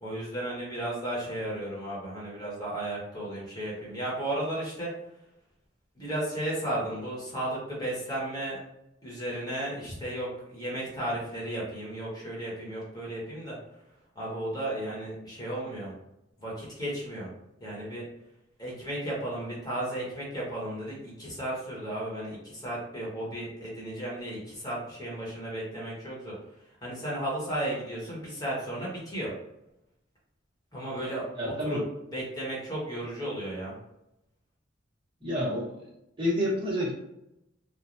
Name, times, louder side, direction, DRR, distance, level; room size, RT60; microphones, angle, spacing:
voice 1, 0.0-4.9 5.9-8.6 9.0-13.6 14.1-15.9 16.4-17.3 17.6-18.0 18.6-26.3 26.8-29.3 30.7-31.8 32.1-33.8, right 1 dB, 20° left, -5 dB, 1.1 m, -34 dB
voice 2, 31.4-31.8 35.2-35.7 36.2-36.9, equal, 25° right, -6 dB, 1.1 m, -28 dB
3.2 x 2.2 x 2.6 m, 0.86 s
head